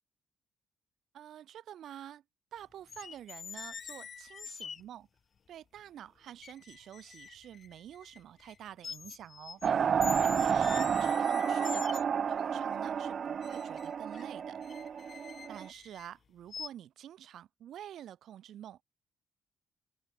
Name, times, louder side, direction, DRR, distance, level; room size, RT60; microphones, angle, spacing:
voice 1, 1.1-2.2 2.5-5.1 5.5-9.6 10.2-14.6 15.5-18.8, right 11 dB, 70° right, 3.5 m, -48 dB
sound 1, 2.9-4.8 5.8-5.9 6.4-8.6 8.8-9.7 10.0-12.3 13.4-16.1 16.5-16.7, left 6 dB, 45° left, 1.0 m, -45 dB
sound 2, 9.6-15.7, right 7 dB, 50° right, 0.3 m, -31 dB
open air
cardioid pair, 90°, 0 cm